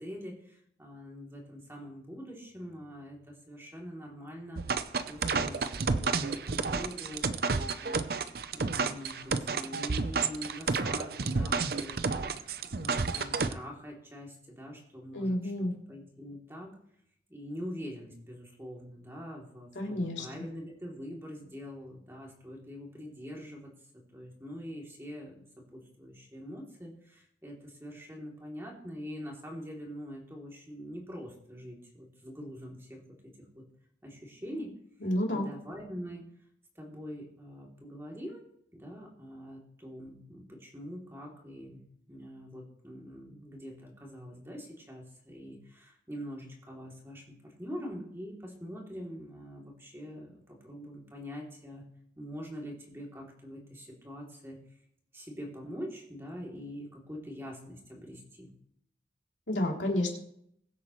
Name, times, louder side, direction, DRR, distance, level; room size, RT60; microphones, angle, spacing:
voice 1, 0.0-4.6 5.1-7.3 7.6-8.0 8.5-16.7 17.3-25.4 25.7-33.6 34.0-34.8 35.3-36.2 36.7-38.4 38.7-51.8 52.2-54.6 55.1-58.5, equal, 15° right, -2 dB, 2.9 m, -44 dB
sound 1, 4.6-13.5, right 4 dB, 55° right, 0.6 m, -30 dB
voice 2, 15.1-15.7 19.7-20.2 35.0-35.5 59.5-60.2, left 1 dB, 85° left, -1 dB, 3.2 m, -30 dB
22.0 x 8.4 x 3.1 m, 0.71 s
head